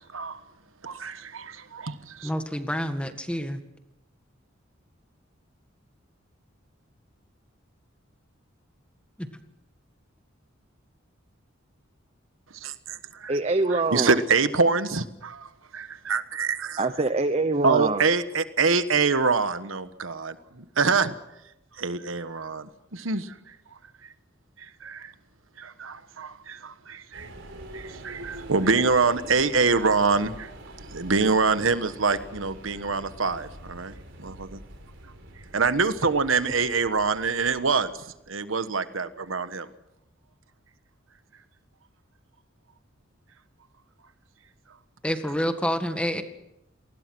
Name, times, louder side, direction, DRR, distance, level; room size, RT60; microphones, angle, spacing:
voice 1, 0.8-2.3 12.6-13.3 13.7-16.8 17.6-21.1 21.8-23.3 24.8-25.1 25.6-27.3 27.7-30.5 30.9-33.9 34.2-34.6 35.5-37.9 38.3-39.7, right 4 dB, 85° right, 1.3 m, -25 dB
voice 2, 2.2-3.6 9.2-9.3 45.0-46.2, equal, 5° left, 1.9 m, -28 dB
voice 3, 13.3-14.2 16.8-18.0, right 3 dB, 30° right, 0.9 m, -24 dB
sound 1, 27.1-38.2, right 1 dB, 70° right, 4.7 m, -45 dB
28.0 x 20.0 x 6.2 m
head